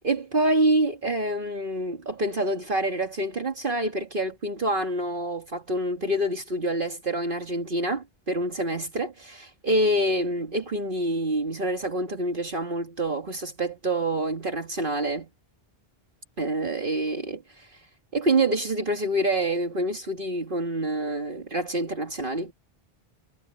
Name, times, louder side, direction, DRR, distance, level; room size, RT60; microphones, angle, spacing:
voice 1, 0.0-15.3 16.4-17.7 18.1-22.5, right 1 dB, 55° right, 2.0 m, -27 dB
omnidirectional pair, 1.1 m